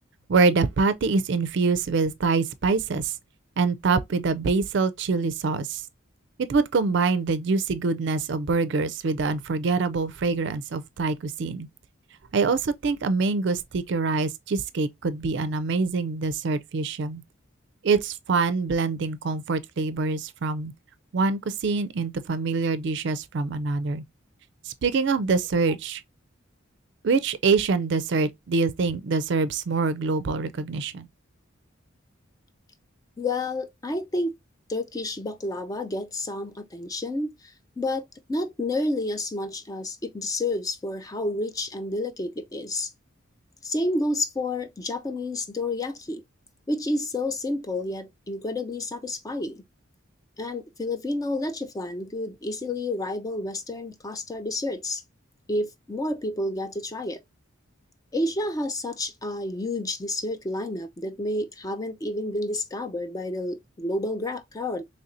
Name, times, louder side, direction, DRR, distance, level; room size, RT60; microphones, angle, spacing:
voice 1, 0.3-3.1 3.6-5.8 6.4-11.7 12.3-17.2 17.8-20.7 21.1-24.0 24.7-26.0 27.0-31.1, right 4 dB, 55° right, 0.4 m, -25 dB
voice 2, 33.2-34.3 34.7-42.9 43.6-46.2 46.7-49.6 50.4-55.0 55.5-57.2 58.1-64.8, left 2 dB, 15° left, 0.3 m, -30 dB
4.1 x 3.2 x 2.5 m
head